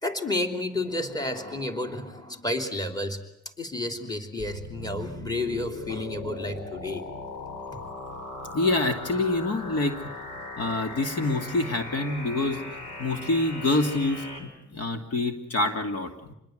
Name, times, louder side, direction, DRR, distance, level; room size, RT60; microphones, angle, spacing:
voice 1, 0.0-3.2 3.6-7.0, left 2 dB, 15° left, 5 dB, 3.2 m, -31 dB
sound 1, 4.4-14.4, left 2 dB, 85° left, 5.7 m, -39 dB
voice 2, 8.5-10.0 10.6-12.6 13.0-16.3, left 2 dB, 55° left, 5 dB, 2.8 m, -26 dB
27.0 x 21.0 x 7.9 m, 0.83 s
cardioid pair, 90°, 30 cm